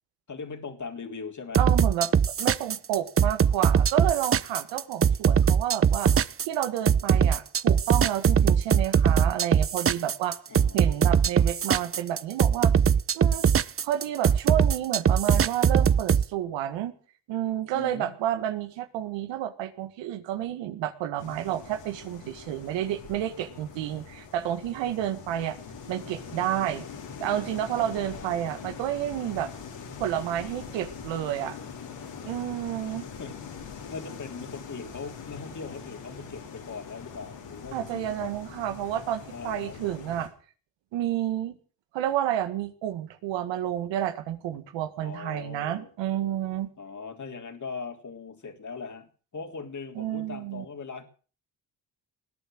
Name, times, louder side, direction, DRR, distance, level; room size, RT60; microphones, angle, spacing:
voice 1, 0.3-1.6 10.5-10.8 17.7-18.1 27.8-28.4 33.2-33.4 33.7-38.3 39.3-39.8 45.0-45.9 46.8-51.0, left 4 dB, 40° left, 5 dB, 3.5 m, -40 dB
sound 1, 1.5-16.2, right 7 dB, 30° right, 0.7 m, -21 dB
voice 2, 1.6-6.1 6.4-10.4 10.7-12.7 13.1-13.5 13.8-16.9 17.3-25.6 25.9-26.8 27.2-29.5 30.0-31.6 32.2-33.1 37.7-40.3 40.9-41.6 41.9-46.7 50.0-50.7, right 11 dB, 90° right, 10 dB, 1.8 m, -30 dB
sound 2, 21.2-40.3, left 6 dB, 80° left, 5.2 m, -43 dB
20.5 x 8.9 x 7.8 m, 0.41 s
supercardioid pair, 65°, 43 cm